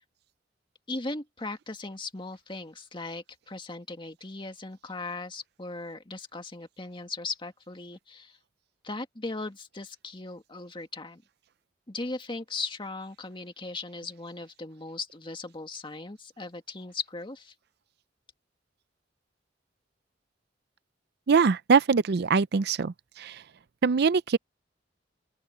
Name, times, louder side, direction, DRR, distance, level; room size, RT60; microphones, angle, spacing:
voice 1, 0.9-8.4 8.8-11.2 11.9-17.5, left 3 dB, 30° left, 2.0 m, -38 dB
voice 2, 21.3-22.9 23.2-23.3 23.8-24.4, right 5 dB, 60° right, 0.5 m, -22 dB
open air
head